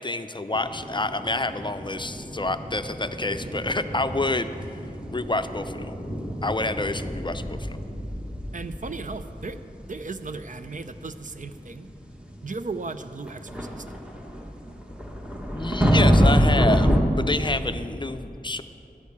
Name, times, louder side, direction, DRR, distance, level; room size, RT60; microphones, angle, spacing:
voice 1, 0.0-4.5 5.1-5.9 6.4-7.8 15.5-18.6, left 2 dB, 30° left, 10 dB, 0.5 m, -28 dB
sound 1, 0.5-17.0, equal, 5° right, 1.3 m, -27 dB
voice 2, 8.5-9.6 9.9-11.9 12.4-13.8, right 3 dB, 55° right, 10 dB, 0.5 m, -36 dB
11.5 x 6.5 x 8.4 m, 3.0 s
wide cardioid pair, 55°, 16 cm